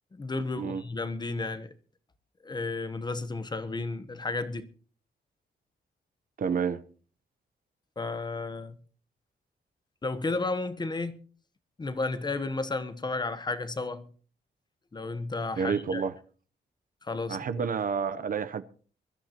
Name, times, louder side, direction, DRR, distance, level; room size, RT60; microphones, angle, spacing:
voice 1, 0.1-1.7 2.4-4.7 8.0-8.8 10.0-11.2 11.8-14.1 14.9-16.0 17.0-17.6, left 3 dB, 20° left, 0.9 m, -33 dB
voice 2, 6.4-6.8 15.6-16.1 17.3-18.6, right 6 dB, 45° right, 0.7 m, -29 dB
23.0 x 13.0 x 2.9 m
wide cardioid pair, 170°, 19 cm